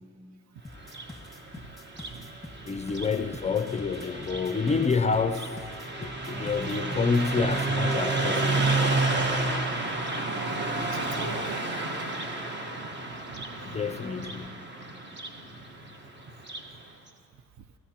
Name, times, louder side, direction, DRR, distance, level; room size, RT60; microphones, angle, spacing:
sound 1, 0.6-7.7, left 2 dB, ahead, 1.7 m, -46 dB
Car passing by, 0.8-16.7, right 2 dB, 35° right, 1.3 m, -31 dB
voice 1, 2.7-5.6 6.0-8.8 13.6-14.5, left 5 dB, 25° left, 8 dB, 0.4 m, -28 dB
voice 2, 6.3-6.6 10.2-12.0 13.3-13.5, right 6 dB, 65° right, 10 dB, 0.7 m, -43 dB
24.0 x 15.5 x 2.9 m, 2.7 s
cardioid pair, 90°, 30 cm